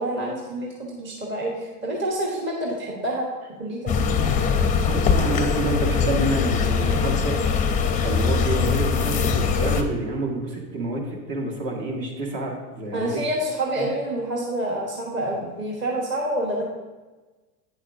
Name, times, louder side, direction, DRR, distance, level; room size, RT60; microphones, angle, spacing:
voice 1, 0.0-3.3 3.6-3.9 12.9-16.6, right 1 dB, 25° right, -2 dB, 1.2 m, -27 dB
sound 1, 3.9-9.8, left 5 dB, 20° left, 0.5 m, -22 dB
voice 2, 4.9-7.4 8.0-13.1 13.8-13.9, right 2 dB, 55° right, 0 dB, 1.9 m, -28 dB
9.1 x 7.0 x 2.7 m, 1.2 s
supercardioid pair, 130°, 44 cm